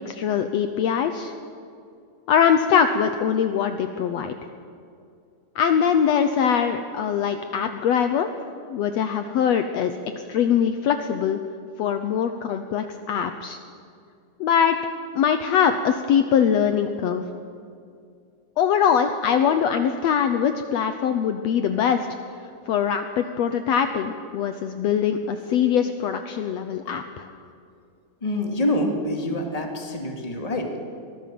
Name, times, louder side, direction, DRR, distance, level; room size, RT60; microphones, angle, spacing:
voice 1, 0.1-1.3 2.3-4.3 5.6-8.3 8.7-11.4 11.8-13.6 14.4-14.8 15.2-17.2 18.6-22.1 22.7-27.3, left 8 dB, 70° left, 8 dB, 1.8 m, -22 dB
voice 2, 28.2-30.8, left 1 dB, 15° left, 2 dB, 2.2 m, -26 dB
23.5 x 17.5 x 7.7 m, 2.4 s
omnidirectional pair, 3.5 m